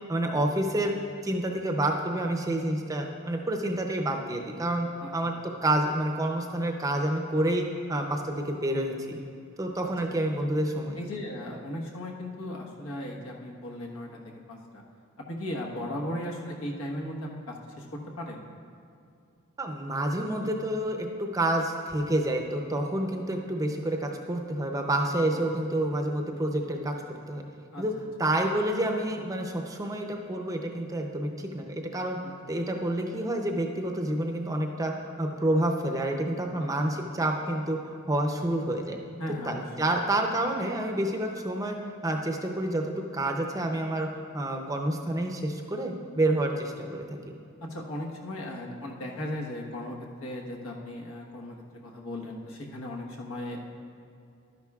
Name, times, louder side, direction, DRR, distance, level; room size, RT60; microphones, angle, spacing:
voice 1, 0.1-0.9 1.2-9.2 9.6-11.0 19.6-26.9 27.3-27.4 27.8-27.9 28.2-32.2 32.5-39.0 39.5-41.8 42.0-44.1 44.3-47.0, right 1 dB, 15° right, 2 dB, 0.5 m, -28 dB
voice 2, 11.0-14.8 15.2-18.4 25.3-25.4 27.7-27.8 32.2-32.3 36.6-36.7 39.2-39.6 47.6-51.6 51.8-53.6, left 1 dB, 80° left, -1 dB, 1.2 m, -37 dB
12.0 x 10.5 x 2.3 m, 2.5 s
head